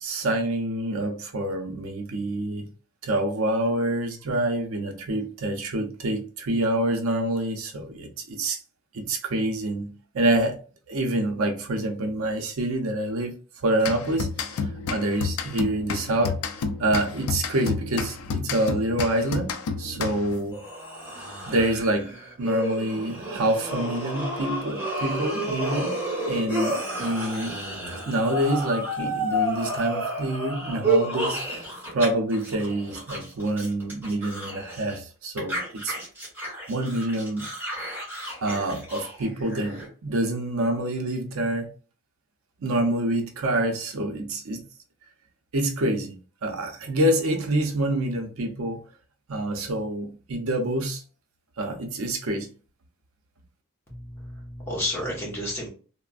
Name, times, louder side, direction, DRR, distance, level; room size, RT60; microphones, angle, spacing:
voice 1, 0.0-2.7 3.0-8.6 8.9-10.6 10.9-13.4 13.6-16.4 16.8-20.6 21.5-26.0 26.3-27.6 28.0-36.0 36.7-37.5 38.4-41.7 42.6-44.6 45.5-48.8 49.3-51.0 51.6-52.5, right 1 dB, 80° right, 0.5 m, -27 dB
sound 1, 13.8-20.5, left 5 dB, 90° left, 0.4 m, -31 dB
sound 2, 20.5-32.1 32.3-35.0 35.4-39.9, right 1 dB, 10° right, 1.3 m, -31 dB
voice 2, 53.9-55.7, left 1 dB, 10° left, 1.1 m, -31 dB
3.2 x 2.1 x 2.4 m
head